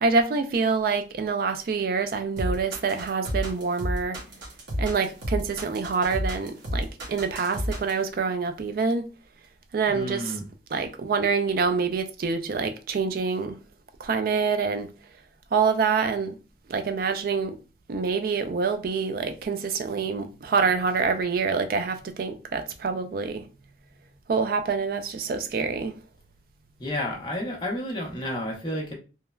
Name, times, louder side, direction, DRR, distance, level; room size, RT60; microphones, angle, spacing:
voice 1, 0.0-4.2 4.8-9.1 9.7-10.4 10.7-13.6 14.0-14.9 15.5-16.3 16.7-17.6 17.9-23.5 24.3-25.9, right 5 dB, 50° right, 0.3 m, -26 dB
sound 1, 2.4-8.0, equal, 70° right, 0.8 m, -30 dB
voice 2, 9.9-10.4 26.8-28.9, left 1 dB, 25° left, 0.7 m, -31 dB
3.1 x 2.1 x 2.2 m
head